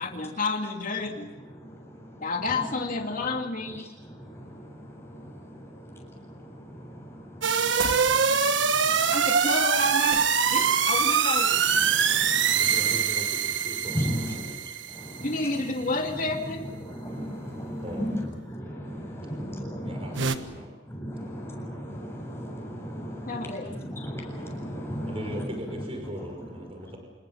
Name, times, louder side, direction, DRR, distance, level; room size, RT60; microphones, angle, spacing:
voice 1, 0.0-1.3 2.2-3.8 9.1-10.2 10.5-11.6 15.2-16.6 23.3-23.7, left 3 dB, 45° left, 3 dB, 2.5 m, -30 dB
voice 2, 1.4-2.7 3.0-3.1 3.6-9.3 10.6-10.8 11.6-13.0 13.8-15.9 16.2-26.5 26.8-27.0, equal, 15° left, 0 dB, 7.8 m, -37 dB
sound 1, 7.4-15.3 20.2-20.4, right 6 dB, 80° right, 1.4 m, -24 dB
sound 2, 7.8-8.1 10.1-10.4, right 4 dB, 55° right, 1.9 m, -33 dB
voice 3, 12.5-14.5 17.8-18.1 19.8-20.7 25.0-27.0, equal, 30° right, 3 dB, 5.8 m, -39 dB
27.0 x 21.0 x 7.2 m, 1.3 s
head